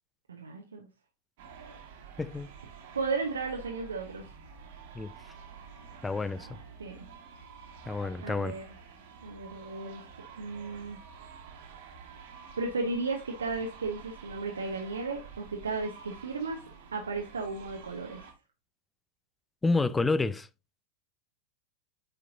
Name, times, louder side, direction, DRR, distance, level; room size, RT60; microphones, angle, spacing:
voice 1, 0.3-0.9 2.9-4.2 6.8-7.0 8.2-8.7 9.2-10.0 10.4-11.0 12.6-16.6 16.9-18.2, right 3 dB, 70° right, 1.0 m, -34 dB
sound 1, 1.4-18.3, right 6 dB, 50° right, 1.6 m, -49 dB
voice 2, 2.2-2.5 4.9-5.1 6.0-6.5 7.9-8.6 19.6-20.5, left 3 dB, 10° left, 0.4 m, -29 dB
8.8 x 4.5 x 2.6 m
figure-of-eight pair, 90°, 0 cm